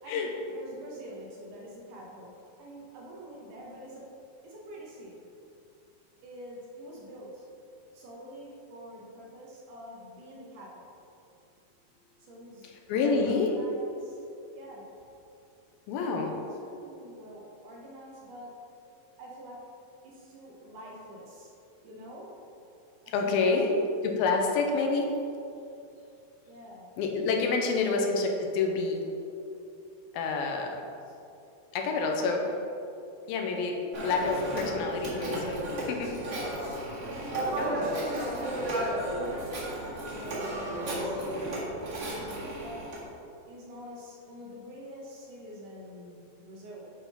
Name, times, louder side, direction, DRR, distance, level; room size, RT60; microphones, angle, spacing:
voice 1, 0.0-4.2 4.4-5.3 6.2-7.5 7.9-11.0 12.2-14.2 14.5-14.9 16.4-18.7 19.2-19.8 20.0-21.5 21.8-22.4 23.0-23.7 26.4-26.9 27.7-27.9 31.1-31.2 32.1-32.6 36.3-36.8 37.0-38.4 39.0-41.2 41.7-42.9 43.5-46.9, equal, 65° right, -4 dB, 2.5 m, -46 dB
voice 2, 12.6-13.5 15.9-16.3 23.1-23.7 24.0-25.1 27.0-29.0 30.1-30.8 31.7-32.4 33.3-36.2 37.6-37.9, left 4 dB, 90° left, 2 dB, 2.7 m, -28 dB
Telephone, 33.9-43.0, right 1 dB, 40° right, 2.0 m, -33 dB
9.4 x 4.2 x 5.5 m, 2.7 s
omnidirectional pair, 4.2 m